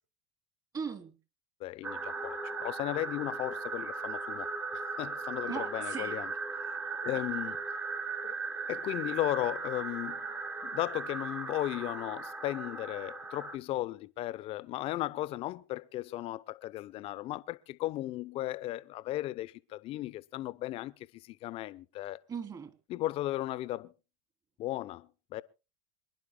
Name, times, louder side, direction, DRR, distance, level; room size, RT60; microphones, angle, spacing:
voice 1, 0.7-1.2 5.5-6.2 22.3-22.7, right 6 dB, 30° right, 3.1 m, -38 dB
voice 2, 1.6-4.5 5.0-6.3 7.0-7.6 8.2-8.4 8.7-10.2 10.6-22.2 22.9-23.9 24.6-25.4, left 15 dB, 50° left, 0.8 m, -36 dB
sound 1, 1.8-13.6, right 4 dB, 15° right, 1.1 m, -37 dB
26.5 x 11.0 x 2.3 m
hypercardioid pair, 95°, 13 cm